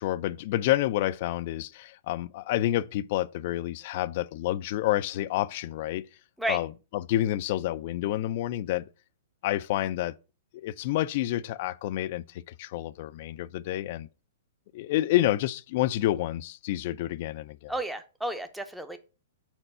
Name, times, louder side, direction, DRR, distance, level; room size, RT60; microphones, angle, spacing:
voice 1, 0.0-6.1 6.5-8.8 9.4-10.1 10.5-14.1 14.7-17.7, left 14 dB, 50° left, 0.3 m, -29 dB
voice 2, 17.7-19.0, right 1 dB, 5° right, 0.6 m, -32 dB
4.4 x 4.0 x 5.4 m
hypercardioid pair, 135°, 0 cm